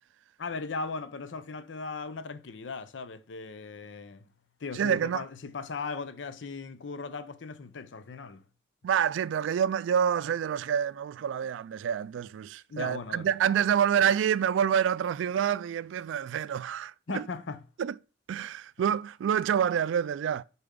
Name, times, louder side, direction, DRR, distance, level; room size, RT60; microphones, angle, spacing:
voice 1, 0.4-4.3 4.6-8.4 12.7-13.3 17.1-17.6, left 4 dB, 85° left, 0.6 m, -38 dB
voice 2, 4.7-5.3 8.8-17.2 17.8-17.9 18.3-20.4, right 8 dB, 90° right, 0.3 m, -27 dB
6.8 x 4.3 x 3.7 m
head